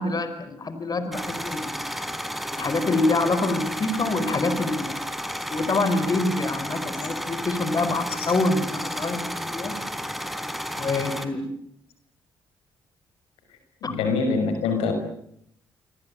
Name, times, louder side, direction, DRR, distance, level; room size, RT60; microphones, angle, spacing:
voice 1, 0.0-1.7 2.5-5.0 5.5-9.7 10.7-11.5 13.8-13.9, left 2 dB, 40° left, 11 dB, 4.8 m, -26 dB
sound 1, 1.1-11.3, equal, ahead, 4.1 m, -32 dB
voice 2, 13.9-14.9, left 4 dB, 85° left, 7 dB, 6.0 m, -24 dB
28.5 x 23.5 x 8.8 m, 0.73 s
supercardioid pair, 55°, 10 cm